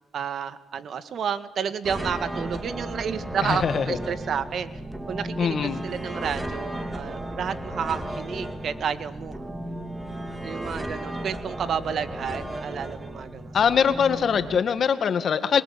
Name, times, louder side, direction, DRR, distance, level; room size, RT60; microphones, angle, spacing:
voice 1, 0.1-4.7 5.1-9.4 10.4-13.9, right 7 dB, 60° right, 13 dB, 1.9 m, -31 dB
sound 1, 1.8-14.6, right 1 dB, 15° right, 3.4 m, -34 dB
voice 2, 3.4-4.0 5.4-5.8 13.5-15.6, left 7 dB, 55° left, 12 dB, 2.0 m, -22 dB
26.5 x 22.5 x 8.7 m, 1.0 s
cardioid pair, 90°, 0 cm